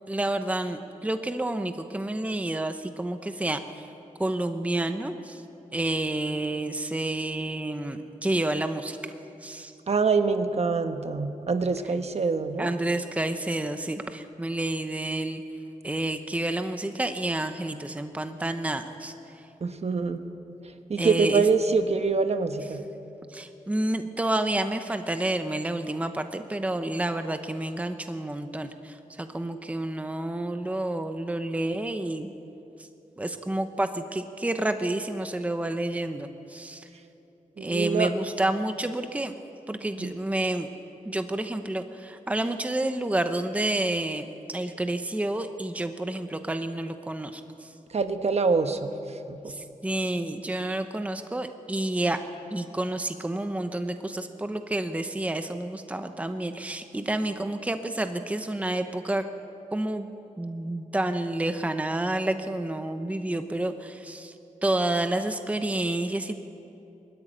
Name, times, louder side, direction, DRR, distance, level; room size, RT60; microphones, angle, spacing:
voice 1, 0.1-3.9 4.2-5.4 5.7-9.0 9.4-9.7 12.6-15.4 15.8-19.4 21.0-21.5 23.3-32.3 32.8-32.9 33.2-36.9 37.6-39.3 39.7-40.7 41.0-47.7 49.5-52.2 52.5-59.2 59.7-60.1 60.4-64.3 64.6-66.4, right 1 dB, 10° right, 8 dB, 0.8 m, -29 dB
voice 2, 9.9-12.7 19.6-20.2 20.9-22.8 37.6-38.1 40.0-40.1 47.9-49.5, right 4 dB, 55° right, 8 dB, 1.1 m, -25 dB
21.5 x 13.5 x 10.0 m, 2.9 s
wide cardioid pair, 135°, 13 cm